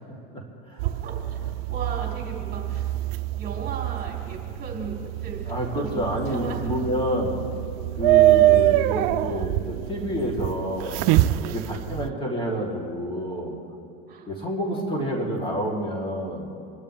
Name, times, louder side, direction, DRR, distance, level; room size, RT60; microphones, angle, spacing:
voice 1, 0.8-2.9 3.3-7.0 8.4-8.5 11.2-11.6 14.1-14.3 14.6-15.2, right 4 dB, 30° right, -2 dB, 3.7 m, -37 dB
sound 1, 0.8-12.1, right 15 dB, 60° right, 0.7 m, -24 dB
voice 2, 5.5-7.3 8.0-9.6 9.9-11.0 11.5-13.5 14.3-16.5, equal, 15° left, -3 dB, 3.6 m, -28 dB
27.5 x 12.5 x 3.5 m, 2.5 s
supercardioid pair, 115°, 30 cm